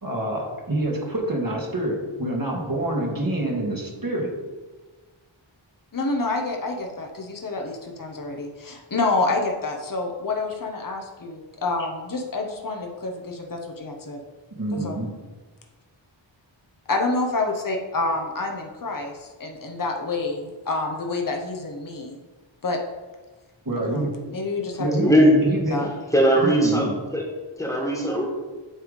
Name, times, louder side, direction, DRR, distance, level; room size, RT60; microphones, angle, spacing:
voice 1, 0.0-4.3 14.5-15.1 23.7-24.2 24.8-25.9 26.4-26.9, right 1 dB, 45° right, -1 dB, 1.9 m, -26 dB
voice 2, 5.9-14.2 14.8-15.0 16.9-22.2 22.6-22.8 23.8-24.0 24.3-24.9 25.7-25.9, left 3 dB, 45° left, 2 dB, 1.0 m, -28 dB
voice 3, 25.0-25.3 26.1-27.2 27.6-28.3, equal, 5° left, -2 dB, 1.7 m, -19 dB
9.0 x 3.5 x 5.1 m, 1.3 s
wide cardioid pair, 65°, 48 cm